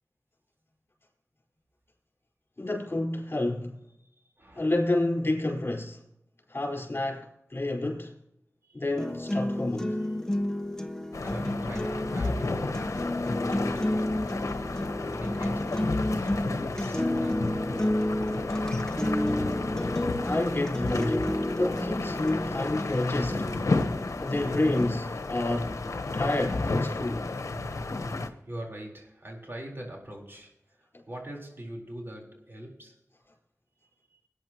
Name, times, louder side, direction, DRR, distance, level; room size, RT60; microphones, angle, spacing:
voice 1, 2.6-3.8 4.5-6.0 6.5-8.1 8.7-10.0 20.2-23.5 24.2-25.7 26.1-27.3, left 2 dB, 45° left, 4.7 m, -29 dB
voice 2, 4.1-4.7 8.6-8.8 10.0-10.1 11.2-13.1 13.4-14.2 15.1-17.8 28.5-30.5 30.8-33.0 34.1-34.2, right 1 dB, 45° right, 4.3 m, -42 dB
sound 1, 9.0-25.0, left 1 dB, 10° left, 1.1 m, -31 dB
sound 2, 11.1-28.3, left 3 dB, 75° left, 1.1 m, -32 dB
20.0 x 9.9 x 3.1 m
cardioid pair, 45°, 5 cm